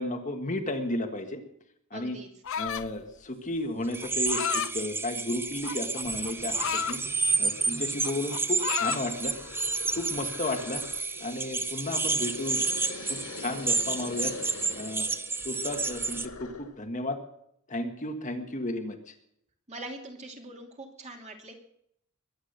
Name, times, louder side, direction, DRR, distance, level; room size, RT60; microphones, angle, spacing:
voice 1, 0.0-1.4 1.9-2.2 2.6-6.6 6.9-7.0 7.4-9.3 9.9-10.8 11.2-12.6 13.1-14.3 14.7-15.1 15.4-17.2 17.7-19.1, left 1 dB, 35° left, 5 dB, 1.5 m, -33 dB
voice 2, 1.9-2.3 19.7-21.5, right 1 dB, 30° right, 2 dB, 2.8 m, -42 dB
sound 1, 2.4-3.0 4.0-4.7 5.6-7.0 7.5-7.7 8.0-9.1, left 8 dB, 60° left, 0.6 m, -32 dB
sound 2, 3.9-16.3, right 4 dB, 10° right, 0.6 m, -30 dB
sound 3, 5.6-5.7 6.0-16.8, left 3 dB, 80° left, 2.0 m, -45 dB
22.0 x 9.8 x 6.6 m, 0.75 s
head